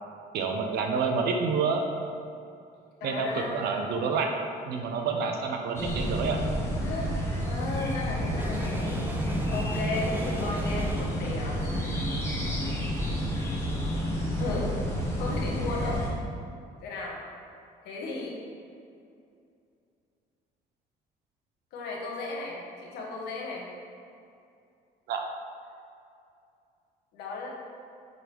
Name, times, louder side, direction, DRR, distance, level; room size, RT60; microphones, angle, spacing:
voice 1, 0.3-1.9 3.0-4.3 4.7-6.4 25.1-25.2, right 5 dB, 75° right, 3 dB, 0.8 m, -28 dB
voice 2, 3.0-3.6 6.8-7.1 7.4-9.1 9.4-11.9 14.4-14.7 15.2-16.0 16.8-17.2 17.8-18.4 21.7-23.7 27.1-27.5, left 3 dB, 85° left, -2 dB, 1.3 m, -35 dB
sound 1, 5.8-16.1, equal, 15° left, 1.2 m, -30 dB
sound 2, 8.4-11.5, right 1 dB, 10° right, 0.4 m, -38 dB
7.7 x 3.9 x 3.4 m, 2.5 s
cardioid pair, 110°, 17 cm